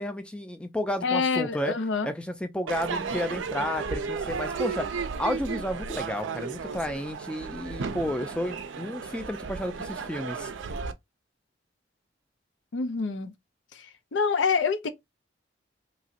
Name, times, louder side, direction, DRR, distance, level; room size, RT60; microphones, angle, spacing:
voice 1, 0.0-1.7 2.0-10.5, equal, 5° left, 0.3 m, -32 dB
voice 2, 1.0-2.1 12.7-13.3 13.7-14.9, left 5 dB, 80° left, 0.5 m, -27 dB
Crowd / Fireworks, 2.7-10.9, right 5 dB, 90° right, 0.4 m, -34 dB
2.9 x 2.7 x 2.5 m
head